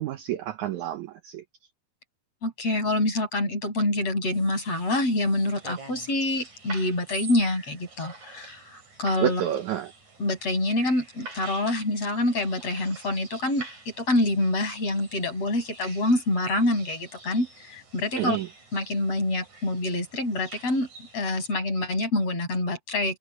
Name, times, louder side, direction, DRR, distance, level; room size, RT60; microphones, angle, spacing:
voice 1, 0.0-1.4 9.2-9.9 18.2-18.5, right 12 dB, 85° right, 1.7 m, -29 dB
voice 2, 2.4-9.4 10.2-13.7 14.0-18.4 18.7-20.9 21.1-23.2, left 2 dB, 40° left, 8.6 m, -26 dB
sound 1, 4.3-21.5, right 3 dB, 50° right, 8.8 m, -46 dB
omnidirectional pair, 4.4 m